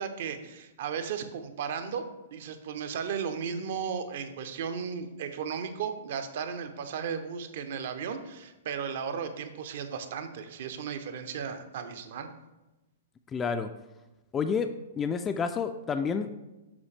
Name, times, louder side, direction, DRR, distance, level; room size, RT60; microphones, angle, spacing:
voice 1, 0.0-2.0 2.3-12.3, right 7 dB, 60° right, 8 dB, 0.7 m, -35 dB
voice 2, 13.3-13.7 14.3-14.7 15.0-16.3, left 6 dB, 20° left, 8 dB, 0.3 m, -29 dB
7.2 x 5.0 x 3.3 m, 1.0 s
hypercardioid pair, 115°, 0 cm